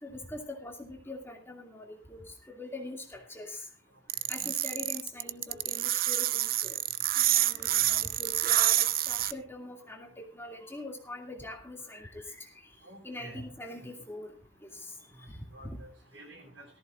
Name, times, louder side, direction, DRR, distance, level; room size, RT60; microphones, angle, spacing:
voice 1, 0.0-2.2 2.5-3.6 4.3-6.8 7.2-12.5 13.0-14.3 15.3-15.4, left 2 dB, 15° left, 2 dB, 2.4 m, -43 dB
sound 1, 4.1-9.3, right 14 dB, 50° right, 0.5 m, -27 dB
voice 2, 7.4-7.8 12.8-13.4 15.5-16.7, right 1 dB, 90° right, 1 dB, 7.4 m, -49 dB
17.5 x 14.0 x 2.5 m, 0.34 s
head